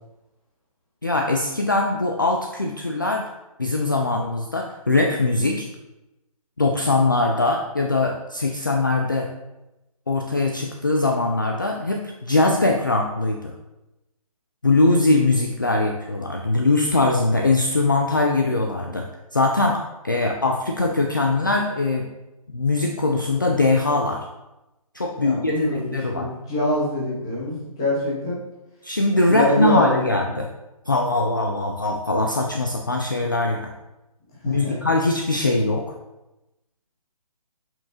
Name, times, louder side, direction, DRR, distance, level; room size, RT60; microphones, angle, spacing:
voice 1, 1.0-3.3 3.6-5.7 6.6-9.3 10.1-13.5 14.6-19.1 19.3-22.1 22.5-24.3 24.9-26.3 28.8-30.5 30.9-33.7 34.5-36.0, left 2 dB, 35° left, 1 dB, 0.4 m, -21 dB
voice 2, 25.2-28.4 29.3-30.0 34.4-34.8, left 1 dB, 5° left, -8 dB, 0.7 m, -24 dB
7.0 x 5.4 x 2.8 m, 0.96 s
hypercardioid pair, 180°, 19 cm